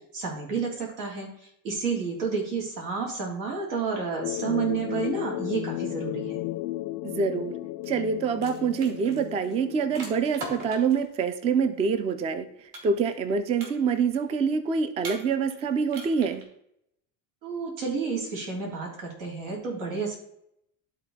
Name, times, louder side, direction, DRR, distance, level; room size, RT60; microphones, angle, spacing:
voice 1, 0.1-6.4 17.4-20.2, right 5 dB, 90° right, -2 dB, 3.4 m, -30 dB
sound 1, 4.2-10.4, left 17 dB, 55° left, 0.5 m, -34 dB
voice 2, 7.0-7.6 7.9-12.5 12.8-16.4, right 5 dB, 20° right, 12 dB, 0.3 m, -26 dB
sound 2, 7.8-8.0 8.3-11.1 12.7-13.3 13.6-14.1 15.0-15.6 15.9-16.4, right 2 dB, 55° right, 2.5 m, -40 dB
12.0 x 4.0 x 4.1 m, 0.75 s
cardioid pair, 145°, 38 cm